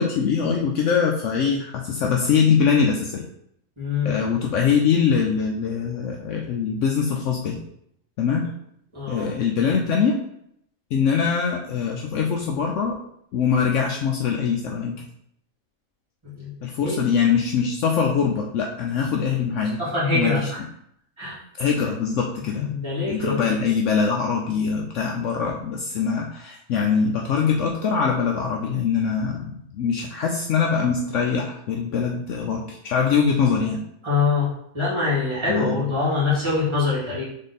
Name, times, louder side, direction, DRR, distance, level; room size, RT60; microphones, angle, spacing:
voice 1, 0.0-3.2 4.0-7.6 8.2-8.5 9.1-10.1 10.9-12.9 13.3-15.0 16.6-19.8 20.1-20.5 21.6-22.7 23.1-33.8 35.5-35.9, left 6 dB, 70° left, 0 dB, 0.8 m, -23 dB
voice 2, 3.8-4.1 8.9-9.3 16.2-16.5 16.8-17.0 19.8-20.6 21.2-21.4 22.5-23.5 34.0-34.5 34.7-37.2, left 4 dB, 20° right, -9 dB, 2.1 m, -24 dB
3.7 x 3.6 x 4.0 m, 0.72 s
omnidirectional pair, 1.5 m